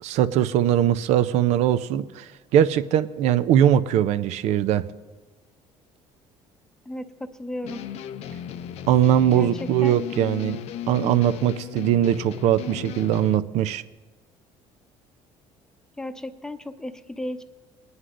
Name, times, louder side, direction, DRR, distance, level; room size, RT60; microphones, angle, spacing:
voice 1, 0.0-4.9 8.9-10.6 10.9-13.8, right 11 dB, 70° right, 13 dB, 0.5 m, -21 dB
voice 2, 6.9-7.8 9.4-10.0 16.0-17.4, left 1 dB, 5° left, 9 dB, 0.7 m, -34 dB
sound 1, 7.6-13.4, left 9 dB, 65° left, 0.5 m, -36 dB
21.5 x 9.6 x 2.5 m, 1.2 s
cardioid pair, 95°, 12 cm